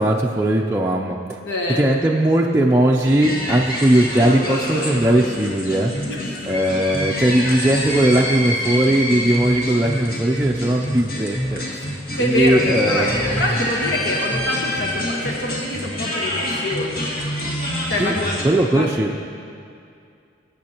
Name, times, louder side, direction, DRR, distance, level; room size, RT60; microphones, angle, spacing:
voice 1, 0.0-1.4 1.8-5.9 6.5-11.6 12.2-13.4 18.0-19.1, right 1 dB, 15° right, -1 dB, 0.4 m, -19 dB
voice 2, 1.4-1.9 6.0-6.7 12.1-17.1 17.9-18.3 18.7-18.9, left 1 dB, 75° left, -1 dB, 1.4 m, -25 dB
sound 1, 3.0-18.4, equal, 50° left, 1.9 m, -26 dB
22.0 x 8.3 x 3.0 m, 2.5 s
head